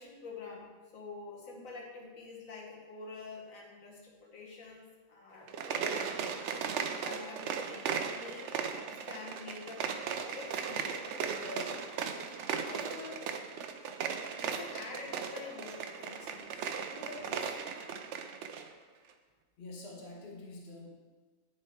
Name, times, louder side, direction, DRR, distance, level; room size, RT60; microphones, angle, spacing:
voice 1, 0.0-6.4 7.0-9.9 10.3-11.9 12.5-13.3 14.4-17.6, left 4 dB, 80° left, -2 dB, 1.7 m, -47 dB
sound 1, 5.4-18.7, right 6 dB, 65° right, 0.9 m, -37 dB
voice 2, 19.6-20.9, left 2 dB, 50° left, -2 dB, 1.4 m, -47 dB
9.9 x 4.5 x 4.4 m, 1.4 s
omnidirectional pair, 1.4 m